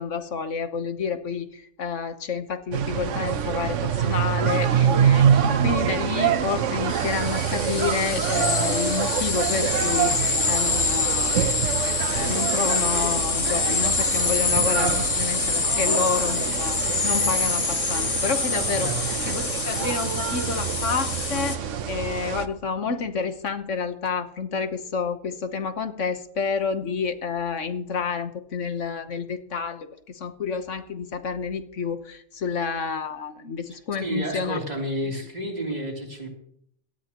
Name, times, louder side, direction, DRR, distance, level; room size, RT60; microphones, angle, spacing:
voice 1, 0.0-11.5 11.9-18.9 19.3-34.6 35.0-35.1, left 5 dB, 70° left, 8 dB, 1.4 m, -29 dB
sound 1, 2.7-22.5, right 8 dB, 75° right, 1.1 m, -26 dB
sound 2, 6.9-21.6, left 4 dB, 30° left, 1.0 m, -26 dB
voice 2, 18.7-19.1 34.0-36.3, right 1 dB, 35° right, 0 dB, 3.3 m, -30 dB
18.0 x 13.0 x 2.9 m, 0.67 s
omnidirectional pair, 1.3 m